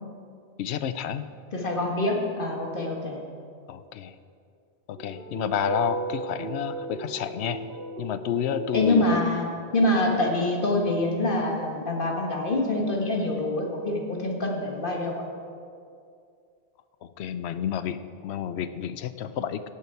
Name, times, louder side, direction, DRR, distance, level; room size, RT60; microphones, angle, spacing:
voice 1, 0.6-1.3 3.7-4.1 4.9-7.6 8.0-9.2 17.0-19.7, left 9 dB, 90° left, 12 dB, 0.9 m, -30 dB
voice 2, 1.5-3.2 8.7-9.5 9.7-15.2, left 2 dB, 55° left, 0 dB, 1.8 m, -25 dB
sound 1, 5.0-9.1, right 2 dB, 70° right, 2.0 m, -35 dB
17.0 x 8.4 x 4.6 m, 2.4 s
omnidirectional pair, 1.1 m